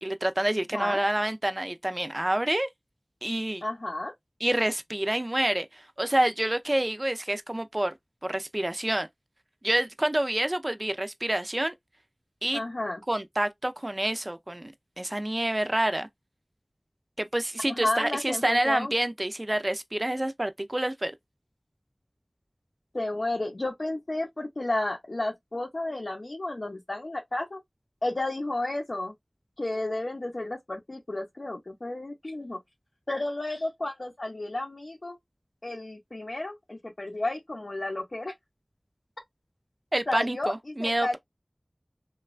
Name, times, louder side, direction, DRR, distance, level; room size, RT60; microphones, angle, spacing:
voice 1, 0.0-2.7 3.2-3.6 4.4-7.9 8.2-9.1 9.6-11.7 12.4-12.6 13.1-16.1 17.2-21.1 39.9-41.2, right 1 dB, 40° right, 0.4 m, -28 dB
voice 2, 3.6-4.1 12.5-13.0 17.7-18.9 22.9-27.6 28.0-29.1 29.6-32.6 33.1-35.2 35.6-38.3 40.1-41.2, left 2 dB, 80° left, 0.6 m, -32 dB
3.0 x 2.2 x 2.4 m
wide cardioid pair, 40°, 0 cm